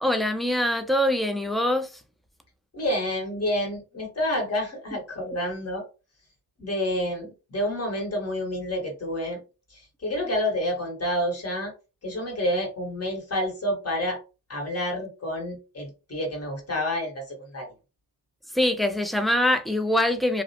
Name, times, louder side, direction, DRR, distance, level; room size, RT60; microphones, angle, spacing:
voice 1, 0.0-1.9 18.5-20.4, left 1 dB, ahead, 0.4 m, -23 dB
voice 2, 2.7-5.8 6.6-9.4 9.7-11.7 12.0-14.2 14.5-17.7, left 1 dB, 35° left, 1.5 m, -29 dB
2.5 x 2.1 x 2.8 m
cardioid pair, 65°, 43 cm